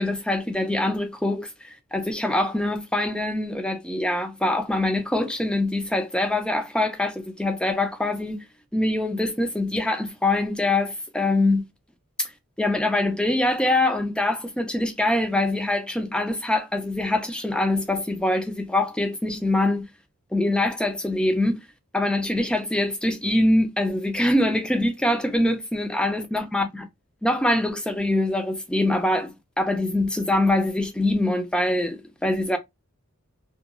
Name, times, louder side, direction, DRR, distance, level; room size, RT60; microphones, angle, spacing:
voice 1, 0.0-8.4 8.7-11.7 12.2-12.3 12.6-19.9 20.3-21.6 21.9-26.9 27.2-32.6, left 1 dB, 5° left, 0.3 m, -24 dB
2.8 x 2.3 x 2.3 m
head